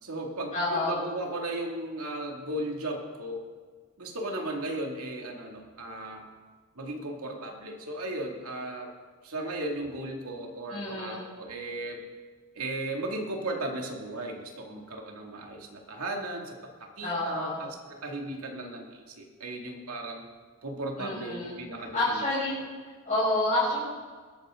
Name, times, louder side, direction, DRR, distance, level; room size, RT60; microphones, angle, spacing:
voice 1, 0.0-3.4 4.0-6.2 6.8-8.9 9.2-12.0 12.6-20.2 20.6-22.2, right 1 dB, 90° right, 1 dB, 2.5 m, -36 dB
voice 2, 0.5-1.0 10.7-11.2 17.0-17.6 21.0-22.6 23.0-23.8, left 2 dB, 35° left, -9 dB, 5.4 m, -29 dB
21.0 x 13.0 x 3.8 m, 1.5 s
head